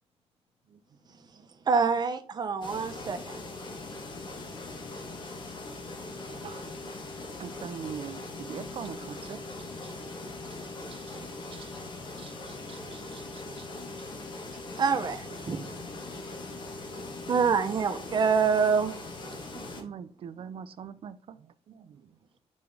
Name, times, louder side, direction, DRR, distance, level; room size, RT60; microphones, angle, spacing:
voice 1, 0.9-1.7 20.0-20.1, left 3 dB, 65° left, -2 dB, 2.6 m, -70 dB
voice 2, 1.7-3.4 14.8-15.8 17.3-18.9, right 5 dB, 40° right, 7 dB, 0.9 m, -26 dB
sound 1, 2.6-19.8, left 2 dB, 45° left, 1.4 m, -41 dB
voice 3, 7.4-10.0 10.5-10.6 10.9-13.8 19.5-22.1, right 8 dB, 55° right, 14 dB, 0.5 m, -44 dB
6.8 x 5.2 x 3.4 m, 0.42 s
wide cardioid pair, 155°, 11 cm